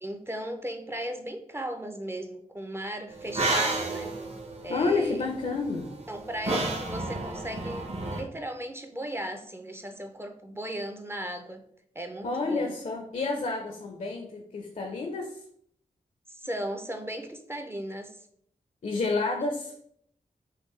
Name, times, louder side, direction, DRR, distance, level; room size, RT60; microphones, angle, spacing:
voice 1, 0.0-4.1 4.6-5.3 6.1-11.6 12.0-12.7 16.4-18.2, right 1 dB, 15° right, 6 dB, 0.4 m, -36 dB
sound 1, 3.2-8.2, right 2 dB, 45° right, 0.8 m, -32 dB
voice 2, 4.7-5.9 12.2-15.4 18.8-19.8, left 3 dB, 55° left, 3 dB, 0.5 m, -29 dB
3.5 x 2.6 x 3.1 m, 0.67 s
cardioid pair, 70°, 14 cm